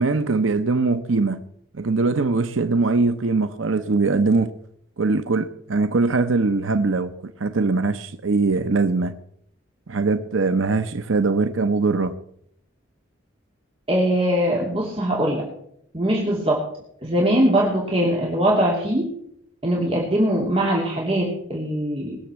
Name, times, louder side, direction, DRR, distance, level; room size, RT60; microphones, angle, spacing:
voice 1, 0.0-1.4 1.7-4.5 5.0-9.1 9.9-12.1, right 3 dB, 85° right, 0.8 m, -21 dB
voice 2, 13.9-15.4 15.9-16.6 17.0-19.1 19.6-22.2, right 1 dB, 30° right, 2.5 m, -21 dB
20.0 x 7.1 x 7.5 m
head